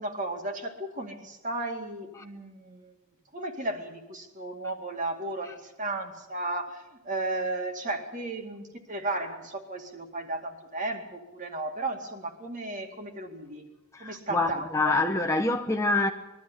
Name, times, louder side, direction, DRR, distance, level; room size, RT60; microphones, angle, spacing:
voice 1, 0.0-2.9 3.3-13.7 14.0-15.0, right 2 dB, 35° right, 2.3 m, -34 dB
voice 2, 13.9-16.1, left 2 dB, 15° left, 0.9 m, -26 dB
21.5 x 13.0 x 9.9 m
head